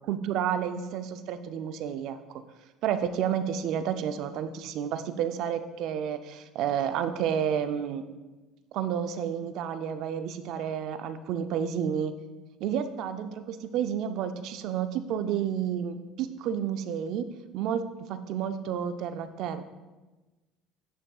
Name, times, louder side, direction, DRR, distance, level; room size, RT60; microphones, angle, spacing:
voice 1, 0.1-2.2 2.8-8.0 8.7-12.1 12.6-17.3 17.5-19.6, right 8 dB, 65° right, 10 dB, 0.5 m, -30 dB
9.4 x 6.1 x 2.4 m, 1.2 s
cardioid pair, 115°, 0 cm